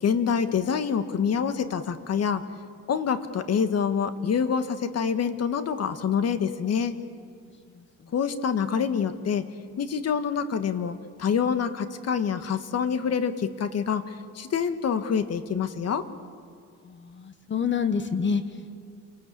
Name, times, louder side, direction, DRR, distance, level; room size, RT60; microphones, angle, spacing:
voice 1, 0.0-2.4 2.9-7.0 8.1-9.5 9.8-16.1, left 7 dB, 55° left, 10 dB, 1.6 m, -26 dB
voice 2, 7.7-8.1 16.8-18.9, left 6 dB, 40° left, 10 dB, 1.3 m, -29 dB
28.5 x 19.0 x 8.5 m, 2.2 s
cardioid pair, 90°, 30 cm